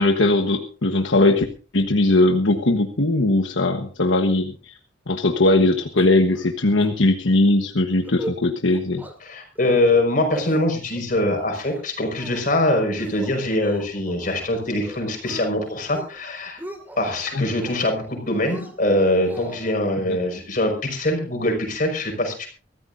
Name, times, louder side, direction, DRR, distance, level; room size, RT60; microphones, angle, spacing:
voice 1, 0.0-1.4 1.7-4.7 5.1-9.0 17.3-17.4 20.1-20.2, left 2 dB, 80° left, 5 dB, 1.3 m, -19 dB
sound 1, 6.0-6.5 6.8-6.9 7.3-7.5 7.9-8.4 8.7-9.1 9.6-10.0 10.3-11.0 11.4-11.8 12.2-12.6 13.0-14.5 14.8-15.5 15.8-16.2 16.5-17.1 17.5-18.1 18.4-19.7, right 1 dB, 10° right, 2.2 m, -38 dB
voice 2, 9.2-16.6 17.0-22.5, left 1 dB, 45° left, 2 dB, 5.6 m, -23 dB
23.5 x 14.5 x 2.7 m, 0.38 s
head